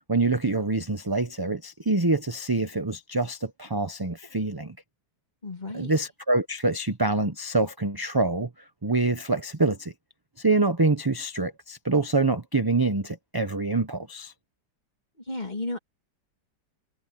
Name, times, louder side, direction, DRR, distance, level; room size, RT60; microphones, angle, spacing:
voice 1, 0.1-4.8 5.7-8.5 8.8-9.9 10.4-14.3, right 3 dB, 20° right, 0.6 m, -25 dB
voice 2, 5.4-5.9 15.3-15.8, left 2 dB, 25° left, 2.6 m, -33 dB
omnidirectional pair, 1.8 m